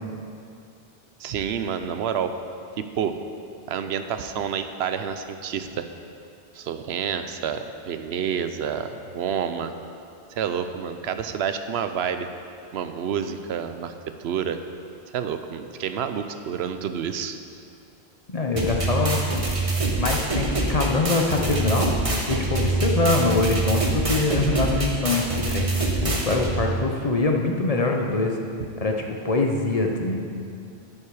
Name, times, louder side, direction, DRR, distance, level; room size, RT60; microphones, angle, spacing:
voice 1, 1.2-2.3 2.8-3.1 3.7-5.9 6.5-9.7 10.3-12.3 12.7-14.6 15.1-17.4, right 8 dB, 80° right, 9 dB, 0.9 m, -29 dB
voice 2, 18.3-19.4 20.0-22.0 22.3-28.3 28.8-29.0 29.2-30.3, left 3 dB, 40° left, 1 dB, 0.9 m, -24 dB
sound 1, 18.6-26.6, right 2 dB, 35° right, 1.2 m, -25 dB
9.8 x 9.5 x 4.8 m, 2.5 s
omnidirectional pair, 1.1 m